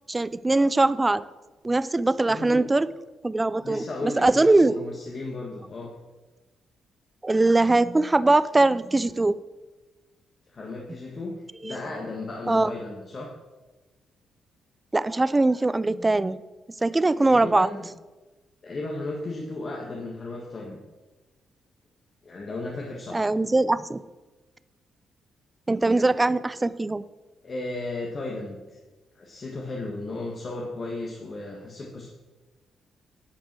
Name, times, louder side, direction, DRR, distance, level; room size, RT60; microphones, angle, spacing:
voice 1, 0.1-1.2 1.6-2.9 3.2-3.8 4.2-4.7 7.2-9.3 11.6-11.7 12.5-12.7 14.9-16.4 16.8-17.7 23.1-24.0 25.7-27.0, right 2 dB, 15° right, 16 dB, 0.4 m, -21 dB
voice 2, 2.3-2.7 3.6-5.9 10.5-11.3 11.6-13.3 17.2-17.9 18.6-20.8 22.2-23.3 27.4-28.8 29.2-32.1, left 2 dB, 35° left, -1 dB, 1.6 m, -35 dB
10.0 x 8.1 x 6.1 m, 1.2 s
cardioid pair, 140°, 0 cm